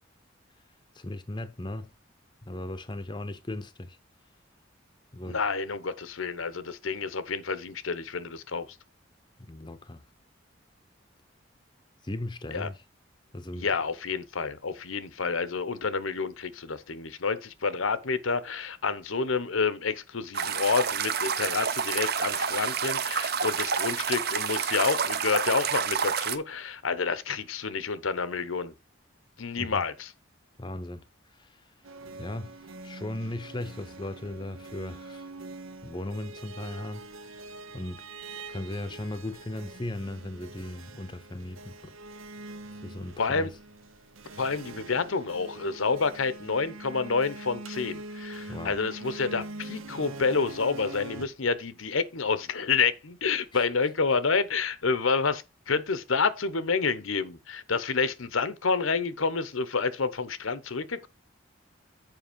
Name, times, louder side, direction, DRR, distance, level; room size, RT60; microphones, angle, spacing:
voice 1, 0.9-1.9 2.4-4.0 5.1-5.4 9.4-10.0 12.0-12.8 13.3-13.7 29.6-29.8 30.6-31.0 31.3-31.6 32.2-32.6 32.8-35.2 35.8-37.4 37.7-38.0 38.5-41.9 42.8-43.5 48.5-48.8 53.5-53.6, left 1 dB, 20° left, 0.7 m, -37 dB
voice 2, 5.3-8.7 12.5-12.7 13.5-28.7 29.4-30.1 43.2-43.5 44.4-61.1, left 4 dB, 80° left, 0.9 m, -29 dB
sound 1, 20.3-26.4, right 6 dB, 50° right, 0.8 m, -29 dB
sound 2, 31.8-51.3, right 2 dB, 85° right, 0.9 m, -43 dB
7.9 x 5.3 x 5.1 m
head